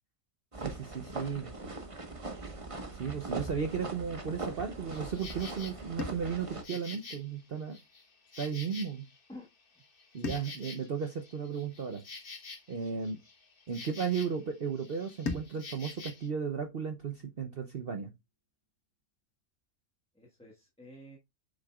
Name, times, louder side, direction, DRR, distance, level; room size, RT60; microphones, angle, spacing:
sound 1, 0.5-6.6, right 3 dB, 25° right, 1.2 m, -41 dB
voice 1, 0.6-1.5 2.9-7.8 8.4-9.1 10.1-12.0 12.7-13.2 13.7-18.1, right 6 dB, 50° right, 0.9 m, -35 dB
Insect, 4.9-5.8 6.3-9.3 9.6-14.5 14.7-16.3, left 4 dB, 40° left, 1.4 m, -48 dB
sound 2, 8.1-8.3 10.2-12.7 15.3-17.8, left 4 dB, 85° left, 1.8 m, -45 dB
voice 2, 20.1-21.2, left 1 dB, 5° left, 1.3 m, -50 dB
7.7 x 6.4 x 2.3 m
omnidirectional pair, 1.5 m